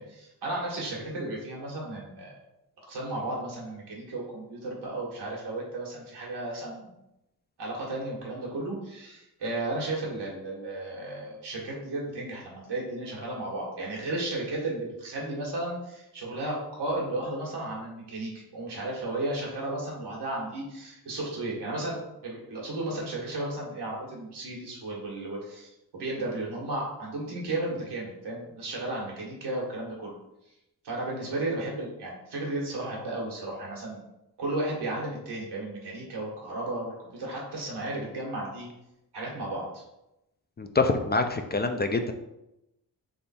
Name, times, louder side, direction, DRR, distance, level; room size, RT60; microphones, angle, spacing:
voice 1, 0.0-2.4 2.9-6.9 7.6-30.1 30.8-34.0 34.4-38.7 39.1-39.8, right 2 dB, 90° right, -3 dB, 1.6 m, -34 dB
voice 2, 40.6-42.1, left 3 dB, 25° left, 6 dB, 0.4 m, -25 dB
3.6 x 3.2 x 4.2 m, 0.88 s
cardioid pair, 65°, 40 cm